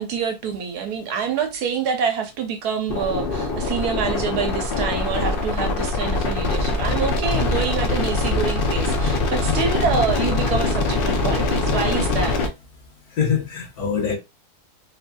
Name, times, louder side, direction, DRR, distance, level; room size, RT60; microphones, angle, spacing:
voice 1, 0.0-12.4, right 6 dB, 90° right, 1.3 m, -26 dB
sound 1, 2.9-12.5, left 3 dB, 60° left, 0.6 m, -23 dB
voice 2, 13.1-14.2, left 6 dB, 90° left, 1.8 m, -24 dB
4.0 x 2.6 x 2.3 m
omnidirectional pair, 1.6 m